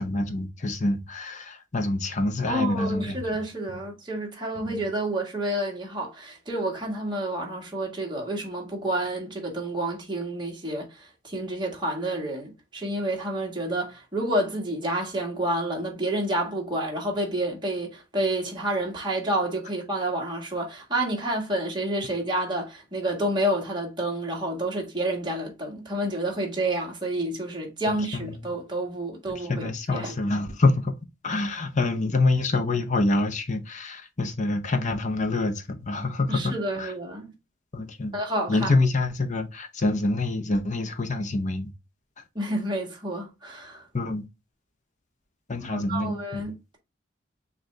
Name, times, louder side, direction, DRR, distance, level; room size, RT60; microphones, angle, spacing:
voice 1, 0.0-3.2 4.6-4.8 27.9-28.3 29.3-30.9 31.2-36.9 37.7-38.1 38.5-41.7 42.2-42.3 43.9-44.2 45.5-46.5, left 2 dB, 40° left, 0.7 m, -26 dB
voice 2, 2.5-30.2 36.3-37.3 38.1-38.7 42.4-43.8 45.7-46.8, right 1 dB, 25° right, 1.6 m, -29 dB
6.4 x 2.5 x 3.3 m
head